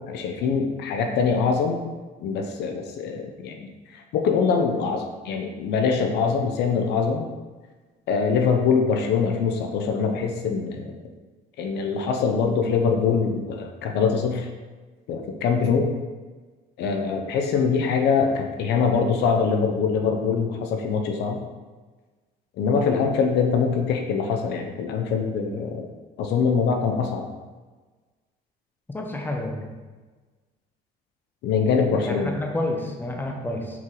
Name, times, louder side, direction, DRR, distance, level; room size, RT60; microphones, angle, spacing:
voice 1, 0.1-1.9 2.2-7.3 8.1-11.0 11.6-14.5 15.1-15.9 16.8-21.4 22.6-25.9 26.2-27.3 31.4-32.3, left 5 dB, 80° left, 3 dB, 0.9 m, -23 dB
voice 2, 28.9-29.7 31.9-33.8, left 1 dB, 10° left, 2 dB, 1.0 m, -29 dB
6.1 x 4.7 x 3.9 m, 1.3 s
cardioid pair, 110°, 17 cm